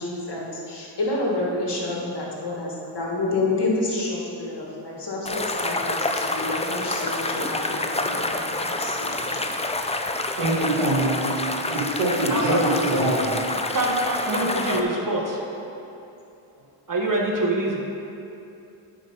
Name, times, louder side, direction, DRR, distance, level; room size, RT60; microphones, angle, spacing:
voice 1, 0.0-9.1 10.5-10.8 12.9-13.2 14.5-14.6, left 2 dB, 55° left, -3 dB, 1.9 m, -29 dB
sound 1, 5.3-14.8, left 2 dB, 15° left, 0.5 m, -28 dB
voice 2, 10.4-13.3, right 1 dB, 90° right, -5 dB, 2.0 m, -24 dB
voice 3, 13.7-15.4 16.9-17.8, right 1 dB, 40° right, -1 dB, 1.6 m, -24 dB
8.2 x 5.2 x 5.6 m, 2.8 s
cardioid pair, 55°, 50 cm